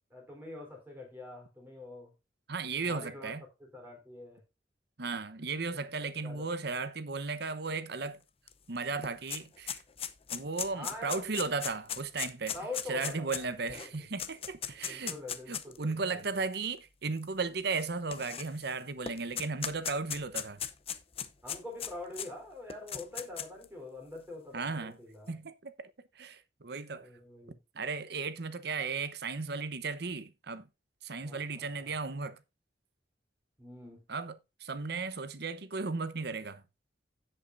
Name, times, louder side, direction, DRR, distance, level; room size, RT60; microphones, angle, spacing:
voice 1, 0.1-2.1 2.8-3.3 3.6-4.4 5.7-5.8 6.2-6.5 10.7-11.3 12.5-13.7 14.8-16.2 21.4-25.4 26.9-27.6 31.2-31.9 33.6-34.0, left 2 dB, 10° right, 3.9 m, -45 dB
voice 2, 2.5-3.4 5.0-8.2 8.7-9.8 10.3-12.5 12.9-15.2 15.5-20.6 24.5-25.0 25.3-25.9 26.2-27.1 27.7-30.7 31.0-32.4 34.1-34.3 34.6-36.6, right 4 dB, 65° right, 0.9 m, -35 dB
sound 1, 8.5-8.6 8.8-15.8 16.5-16.6 17.7-18.7 19.1-22.3 22.7-23.6, left 8 dB, 35° left, 0.7 m, -38 dB
16.5 x 5.6 x 2.6 m
head